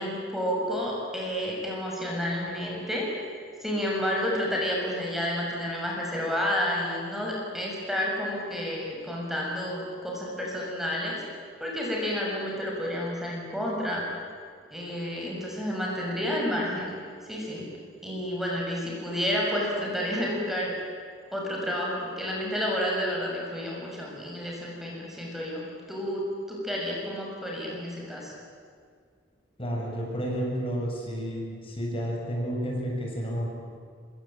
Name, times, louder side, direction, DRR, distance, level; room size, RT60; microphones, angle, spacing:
voice 1, 0.0-11.1 11.6-14.0 14.7-17.0 17.2-17.6 18.0-20.7 21.3-25.6 25.9-28.3, equal, ahead, -3 dB, 6.7 m, -30 dB
voice 2, 29.6-33.5, equal, 30° left, -1 dB, 7.0 m, -31 dB
26.5 x 24.5 x 8.9 m, 2.1 s
head